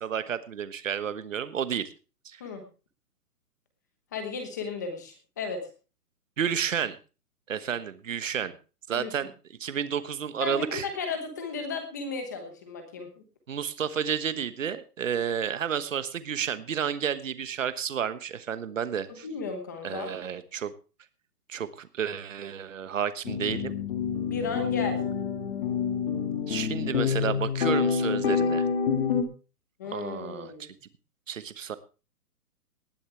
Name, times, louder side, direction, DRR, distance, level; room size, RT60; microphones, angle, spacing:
voice 1, 0.0-1.9 2.2-2.4 6.4-7.0 7.5-8.5 8.9-9.3 9.6-10.8 13.5-19.2 19.8-20.7 21.5-23.7 26.5-28.7 29.9-30.5 31.3-31.8, right 8 dB, 55° right, 13 dB, 1.2 m, -31 dB
voice 2, 4.1-5.7 8.9-9.1 10.4-13.2 19.1-20.1 24.2-25.0 29.8-30.7, left 4 dB, 10° left, 6 dB, 1.0 m, -34 dB
sound 1, 23.2-29.2, left 6 dB, 35° left, 2.0 m, -27 dB
19.0 x 10.5 x 3.3 m, 0.33 s
hypercardioid pair, 175°, 47 cm